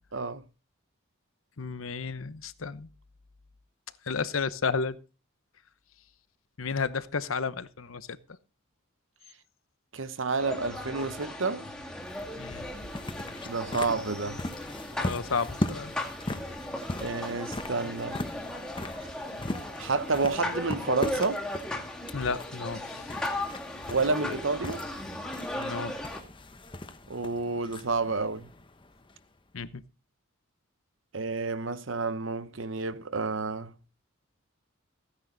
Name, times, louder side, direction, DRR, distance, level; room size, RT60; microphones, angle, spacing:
voice 1, 1.6-2.9 4.1-5.0 6.6-8.2 12.4-12.7 15.0-15.9 22.1-23.1 25.6-26.0 29.5-29.7, left 5 dB, 80° left, 0.9 m, -32 dB
voice 2, 9.9-11.6 13.5-14.4 17.0-18.2 19.8-21.4 23.9-24.8 27.1-28.5 31.1-33.7, right 3 dB, 65° right, 1.0 m, -30 dB
sound 1, 10.4-26.2, left 1 dB, 5° left, 2.1 m, -37 dB
sound 2, 11.7-29.4, left 1 dB, 25° left, 1.0 m, -39 dB
15.5 x 9.8 x 4.0 m
head